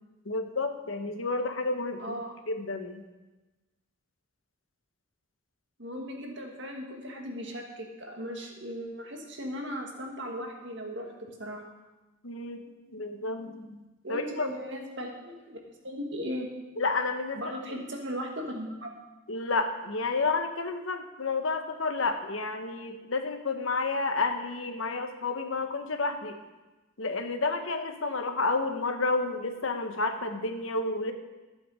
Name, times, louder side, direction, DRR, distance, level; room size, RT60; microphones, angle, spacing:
voice 1, 0.2-2.1 2.5-3.0 12.2-12.6 12.9-13.8 14.1-14.5 16.8-17.4 19.3-26.4 27.0-31.1, left 3 dB, 75° left, 6 dB, 1.2 m, -30 dB
voice 2, 2.0-2.4 5.8-11.1 11.4-11.7 14.0-15.6 15.8-16.5 17.3-18.9, equal, 60° right, 1 dB, 2.0 m, -37 dB
14.5 x 8.0 x 5.0 m, 1.1 s
head